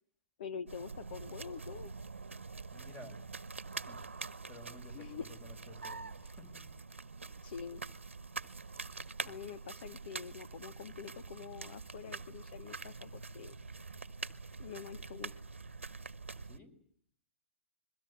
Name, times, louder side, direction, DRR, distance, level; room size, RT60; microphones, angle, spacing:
voice 1, 0.4-1.9 4.9-5.3 7.4-7.8 9.2-13.5 14.6-15.3, left 7 dB, 50° left, 12 dB, 1.0 m, -46 dB
sound 1, 0.7-16.6, right 4 dB, 75° right, 1.1 m, -45 dB
voice 2, 2.7-3.2 3.7-4.0 4.5-6.7 9.2-9.4 16.4-16.8, left 2 dB, 20° left, 12 dB, 4.5 m, -54 dB
27.5 x 22.5 x 8.0 m, 0.62 s
figure-of-eight pair, 115°, 7 cm